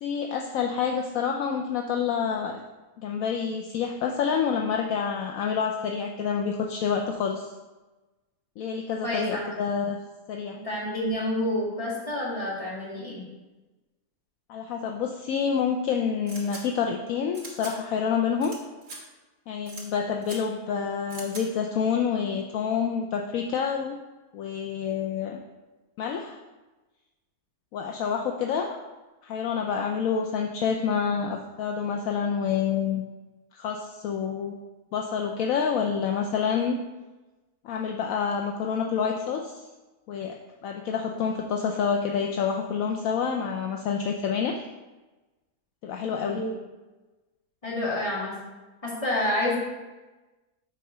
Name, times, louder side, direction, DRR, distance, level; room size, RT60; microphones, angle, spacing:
voice 1, 0.0-2.6 3.0-7.5 8.6-10.0 10.3-10.6 14.5-18.5 19.5-24.0 24.3-25.4 26.0-26.4 27.7-28.7 29.2-33.0 33.5-34.5 34.9-36.8 37.6-39.6 40.1-40.4 40.6-44.6 45.8-46.4, left 6 dB, 70° left, 2 dB, 1.0 m, -28 dB
voice 2, 9.0-9.5 10.6-13.2 46.3-46.6 47.6-48.3 48.8-49.6, left 1 dB, 20° left, -6 dB, 2.2 m, -28 dB
sound 1, 16.3-16.6 17.3-17.7 18.4-18.6 18.8-19.0 19.7-19.8 20.2-20.4 21.1-21.4, right 2 dB, 65° right, 2.1 m, -41 dB
7.5 x 4.1 x 5.5 m, 1.2 s
omnidirectional pair, 1.6 m